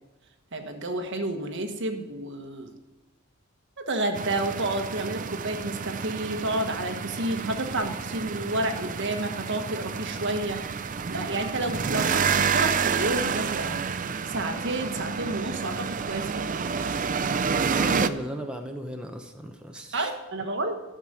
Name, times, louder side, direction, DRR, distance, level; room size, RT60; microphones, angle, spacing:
voice 1, 0.5-2.7 3.8-13.8 14.2-16.5 19.9-20.8, right 2 dB, 60° right, 5 dB, 1.4 m, -30 dB
sound 1, 4.1-18.1, right 6 dB, 40° right, 0.5 m, -29 dB
voice 2, 17.4-20.1, equal, 5° right, 3 dB, 0.9 m, -36 dB
11.5 x 6.7 x 9.0 m, 1.1 s
head